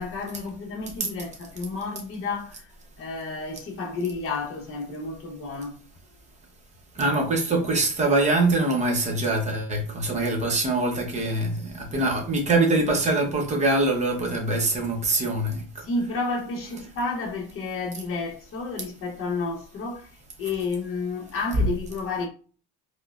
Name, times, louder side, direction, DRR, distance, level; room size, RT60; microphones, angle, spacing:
voice 1, 0.0-5.8 15.8-22.3, left 3 dB, 40° left, 1.0 m, -31 dB
voice 2, 6.9-15.6, right 2 dB, 20° right, 0.8 m, -23 dB
4.7 x 2.2 x 2.4 m
cardioid pair, 155°, 35 cm